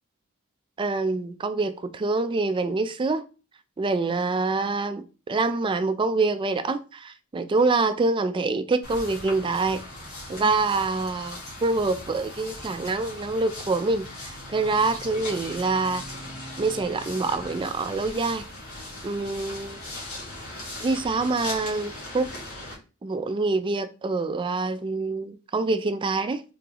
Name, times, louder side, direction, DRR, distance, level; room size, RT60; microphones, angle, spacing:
voice 1, 0.8-3.2 3.8-9.8 10.3-16.0 16.6-18.5 19.0-19.8 20.8-22.3 23.0-26.4, right 3 dB, 20° right, 0.3 m, -26 dB
sound 1, 8.8-22.8, left 1 dB, 75° left, 2.0 m, -39 dB
3.8 x 3.7 x 2.8 m
head